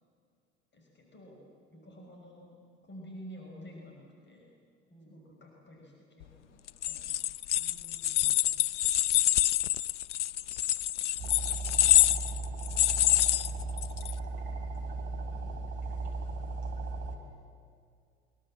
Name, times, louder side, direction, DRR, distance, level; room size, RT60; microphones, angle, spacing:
voice 1, 0.7-2.5 2.8-4.5 5.1-7.5, equal, 30° left, 0 dB, 6.0 m, -50 dB
sound 1, 6.7-14.1, left 13 dB, 75° left, 0.6 m, -26 dB
voice 2, 7.6-8.5 12.6-13.5, right 1 dB, 15° left, -1 dB, 6.4 m, -59 dB
sound 2, 11.2-17.2, right 3 dB, 60° right, 3.9 m, -36 dB
23.5 x 23.0 x 7.7 m, 2.3 s
figure-of-eight pair, 65°, 36 cm